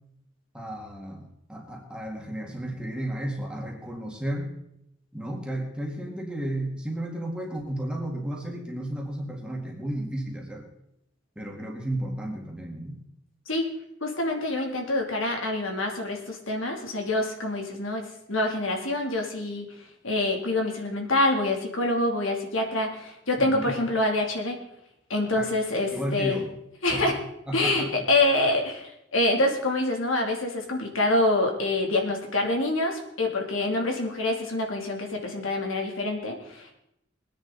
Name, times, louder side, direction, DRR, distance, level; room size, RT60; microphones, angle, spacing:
voice 1, 0.5-4.5 5.1-10.7 11.4-13.0 23.4-23.7 25.3-25.5 25.9-26.5 26.9-27.2 27.5-28.0, right 1 dB, 5° right, 0 dB, 2.1 m, -33 dB
voice 2, 14.0-24.6 25.1-26.4 26.8-27.2 27.5-36.7, left 2 dB, 90° left, 2 dB, 2.9 m, -26 dB
21.5 x 9.9 x 4.0 m, 0.78 s
head